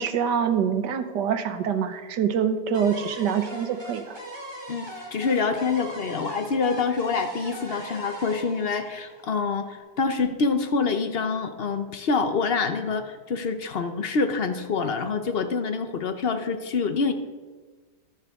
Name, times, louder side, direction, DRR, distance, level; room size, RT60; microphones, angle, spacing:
voice 1, 0.0-4.2, right 7 dB, 75° right, 9 dB, 1.5 m, -25 dB
sound 1, 2.7-9.7, right 1 dB, 15° right, 2.2 m, -40 dB
voice 2, 4.7-17.1, left 4 dB, 55° left, 8 dB, 0.7 m, -26 dB
21.5 x 7.3 x 3.6 m, 1.4 s
omnidirectional pair, 1.9 m